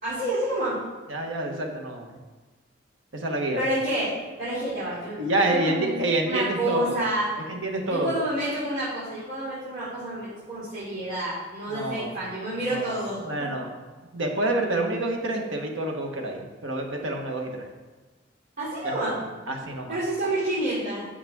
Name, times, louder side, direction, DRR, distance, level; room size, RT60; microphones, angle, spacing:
voice 1, 0.0-0.7 3.5-4.1 4.4-7.3 7.9-13.5 18.6-19.2 19.9-21.1, right 1 dB, 45° right, -13 dB, 2.9 m, -29 dB
voice 2, 1.1-2.2 3.1-3.6 5.2-7.0 7.5-8.1 11.7-12.1 12.7-13.0 13.2-13.7 14.1-17.7 18.8-19.2 19.5-20.0, right 2 dB, 85° right, 1 dB, 1.3 m, -28 dB
8.8 x 6.8 x 3.6 m, 1.3 s
head